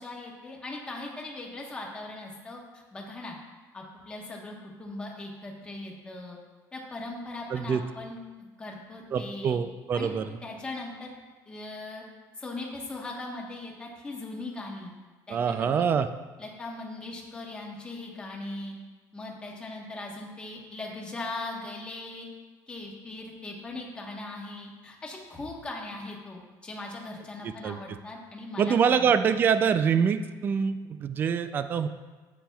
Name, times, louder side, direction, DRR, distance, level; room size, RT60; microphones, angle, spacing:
voice 1, 0.0-3.4 3.7-6.4 6.7-8.2 8.6-9.6 9.9-10.1 10.4-11.1 11.5-12.0 12.4-14.9 15.3-15.9 16.4-18.8 19.1-22.3 22.7-29.1, left 2 dB, 15° left, -1 dB, 1.2 m, -39 dB
voice 2, 7.5-7.8 9.1-10.3 15.3-16.1 27.4-27.8 28.6-31.9, right 7 dB, 25° right, 11 dB, 0.3 m, -25 dB
11.5 x 8.7 x 2.3 m, 1.3 s
cardioid pair, 175°, 8 cm